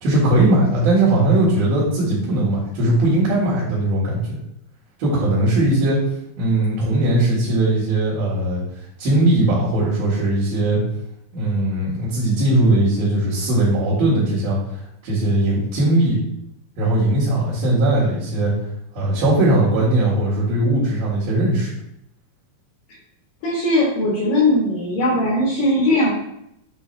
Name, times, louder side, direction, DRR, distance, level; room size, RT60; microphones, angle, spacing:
voice 1, 0.0-4.4 5.0-6.0 6.4-8.6 9.0-10.8 11.3-14.6 15.0-16.2 16.8-18.5 18.9-21.7, right 1 dB, 85° right, -10 dB, 3.8 m, -19 dB
voice 2, 23.4-26.1, left 1 dB, 75° left, -6 dB, 3.0 m, -19 dB
8.3 x 4.0 x 3.3 m, 0.78 s
omnidirectional pair, 4.0 m